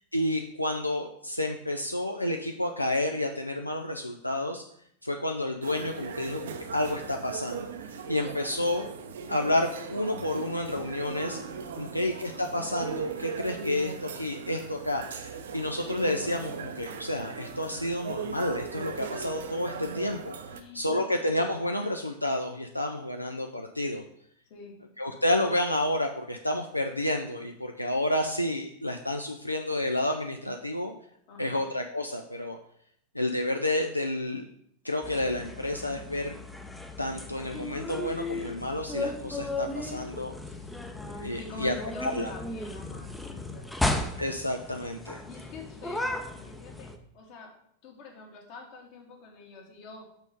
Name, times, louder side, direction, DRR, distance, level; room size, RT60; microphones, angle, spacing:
voice 1, 0.1-4.7 5.0-7.7 8.1-8.9 9.3-11.4 11.8-20.4 20.7-24.0 25.0-30.9 31.4-32.6 33.1-34.4 34.8-36.4 37.0-40.3 41.1-41.7 42.0-42.3 44.2-45.2, left 1 dB, 85° left, 3 dB, 0.4 m, -30 dB
sound 1, 5.6-20.6, right 6 dB, 65° right, 0.6 m, -39 dB
voice 2, 11.8-12.1 20.5-21.2 24.5-24.8 31.3-31.6 41.3-43.9 45.3-47.5 47.8-50.2, left 3 dB, 45° left, 1 dB, 1.7 m, -46 dB
sound 2, 35.0-47.0, left 2 dB, 5° left, 0.6 m, -35 dB
6.2 x 4.1 x 5.1 m, 0.69 s
figure-of-eight pair, 90°, 0 cm